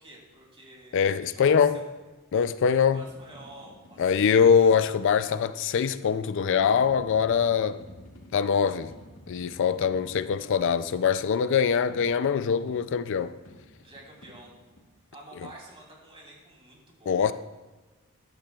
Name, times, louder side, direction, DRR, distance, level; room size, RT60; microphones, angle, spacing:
voice 1, 0.0-1.8 2.8-4.7 13.8-14.5 15.1-17.3, right 1 dB, 25° right, 2.9 m, -49 dB
voice 2, 0.9-1.8 2.3-3.0 4.0-7.8 8.3-8.9 9.3-13.3 17.1-17.3, left 6 dB, 60° left, 0.4 m, -23 dB
sound 1, 2.6-5.3 6.6-10.4 11.9-14.9, left 1 dB, 80° left, 1.9 m, -51 dB
14.0 x 11.5 x 2.4 m
head